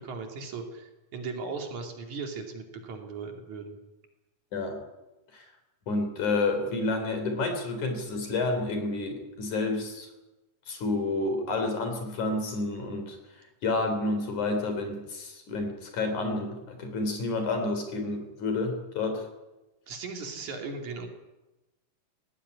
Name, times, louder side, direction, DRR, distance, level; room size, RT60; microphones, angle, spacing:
voice 1, 0.0-3.8 19.9-21.1, right 4 dB, 65° right, 3 dB, 4.1 m, -37 dB
voice 2, 5.9-10.1 10.7-13.2 13.6-19.3, left 2 dB, 65° left, 6 dB, 5.0 m, -29 dB
18.5 x 17.0 x 9.9 m, 1.0 s
omnidirectional pair, 3.7 m